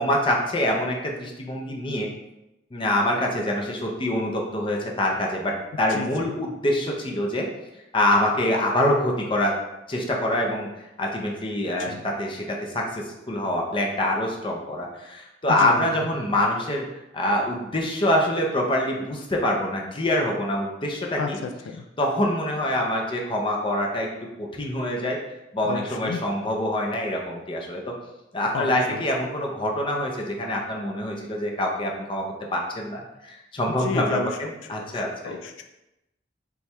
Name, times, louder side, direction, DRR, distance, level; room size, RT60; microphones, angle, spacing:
voice 1, 0.0-2.1 2.7-7.5 7.9-9.6 9.9-16.8 17.1-21.4 22.0-24.1 24.4-25.2 25.5-27.8 28.3-32.2 32.5-35.4, left 1 dB, 30° left, 0 dB, 0.5 m, -25 dB
voice 2, 5.9-6.3 11.8-12.0 15.6-15.9 21.2-21.8 25.6-26.2 28.5-29.0 33.8-35.6, left 4 dB, 90° left, 5 dB, 0.3 m, -32 dB
3.2 x 2.3 x 4.2 m, 0.93 s
head